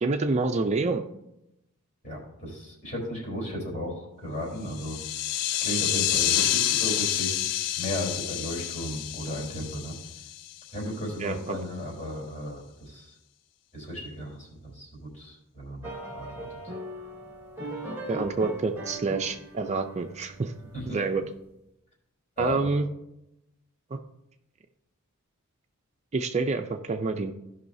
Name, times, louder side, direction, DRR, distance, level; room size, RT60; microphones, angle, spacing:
voice 1, 0.0-1.0 11.2-11.6 18.1-20.5 20.9-21.2 22.4-22.9 23.9-24.0 26.1-27.3, right 3 dB, 30° right, 6 dB, 0.4 m, -27 dB
voice 2, 2.0-5.0 5.5-7.3 7.8-9.9 10.7-13.1 13.7-16.5 20.7-21.0 22.4-22.7, left 1 dB, 35° left, -3 dB, 3.6 m, -35 dB
sound 1, 4.7-10.7, left 12 dB, 85° left, 0.4 m, -28 dB
sound 2, 15.8-21.1, right 1 dB, 10° right, 1.2 m, -39 dB
16.5 x 5.6 x 2.7 m, 0.86 s
head